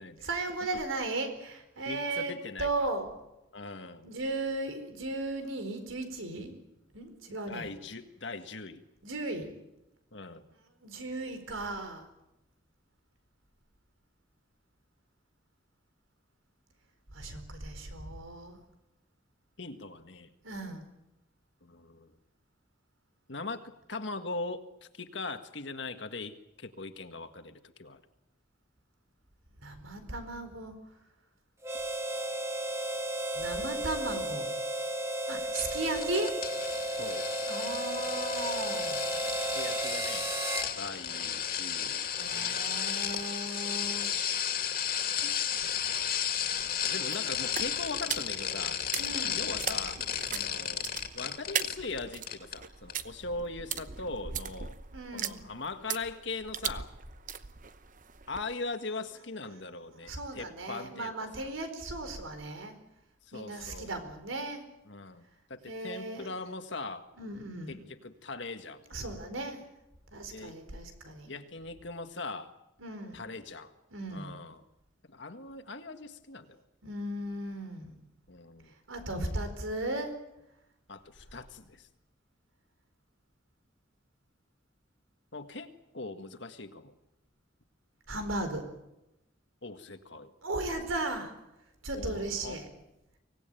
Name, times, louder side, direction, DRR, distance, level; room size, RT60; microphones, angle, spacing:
voice 1, 0.2-3.1 4.0-6.5 6.9-7.7 9.0-9.6 10.8-12.0 17.1-18.6 20.4-20.8 29.6-30.7 33.3-34.5 35.3-36.3 37.5-39.0 42.1-44.1 48.9-49.5 54.9-55.6 59.9-62.7 63.3-64.6 65.7-66.3 67.2-67.8 68.9-69.6 70.1-71.4 72.8-73.3 73.9-74.3 76.8-77.9 78.9-80.1 88.1-88.7 90.4-91.3 91.8-92.7, right 2 dB, 90° right, 8 dB, 4.5 m, -36 dB
voice 2, 1.8-2.9 3.5-4.1 7.3-8.8 10.1-10.4 19.6-20.3 21.6-22.1 23.3-23.6 23.9-24.6 25.0-28.0 36.9-37.3 39.5-40.3 40.8-42.6 45.2-45.4 45.6-45.7 46.9-48.8 49.3-50.0 50.3-50.9 51.1-54.8 55.1-56.9 58.3-61.1 61.4-61.5 63.3-63.9 64.9-67.0 67.7-68.8 70.3-70.6 71.3-72.5 73.1-73.7 74.1-74.6 75.1-76.6 78.3-78.7 80.9-81.9 85.3-86.9 89.6-90.3 91.9-92.6, left 3 dB, 65° left, 8 dB, 1.8 m, -40 dB
Harmonica, 31.6-40.7, right 1 dB, 15° right, 1.6 m, -34 dB
sound 1, 35.5-52.0 52.3-52.6 52.9-53.0, left 9 dB, 45° left, 2.7 m, -33 dB
sound 2, 45.6-58.6, right 8 dB, 40° right, 0.9 m, -40 dB
25.0 x 18.5 x 9.1 m, 0.93 s
head